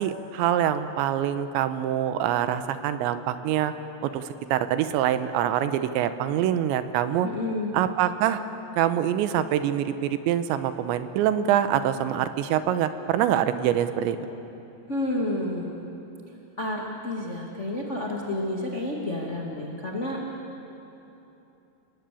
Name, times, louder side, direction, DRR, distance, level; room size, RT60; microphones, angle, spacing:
voice 1, 0.0-3.7 4.0-4.2 4.5-7.3 7.7-8.4 8.8-14.2, right 10 dB, 85° right, 11 dB, 3.2 m, -25 dB
voice 2, 7.2-7.7 14.9-15.8 16.6-20.2, left 1 dB, 45° left, -1 dB, 0.9 m, -30 dB
29.5 x 19.5 x 8.4 m, 3.0 s
omnidirectional pair, 5.2 m